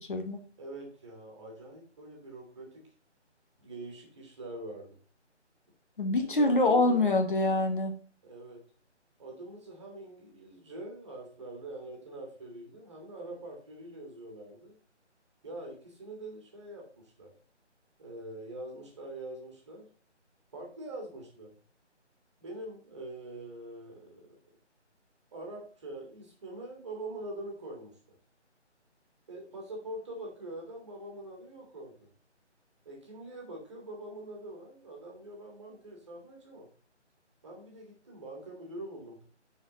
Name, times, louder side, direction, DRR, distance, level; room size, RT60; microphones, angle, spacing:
voice 1, 0.0-0.4 6.0-7.9, left 2 dB, 45° left, 5 dB, 1.2 m, -25 dB
voice 2, 0.6-2.9 3.6-5.0 6.1-7.1 8.2-8.6 9.2-14.8 15.4-17.3 18.0-19.9 20.5-21.5 22.4-24.3 25.3-28.0 29.3-32.1 32.9-36.7 37.4-39.3, right 1 dB, 25° right, -1 dB, 1.9 m, -44 dB
9.8 x 4.5 x 3.8 m, 0.41 s
figure-of-eight pair, 165°, 36 cm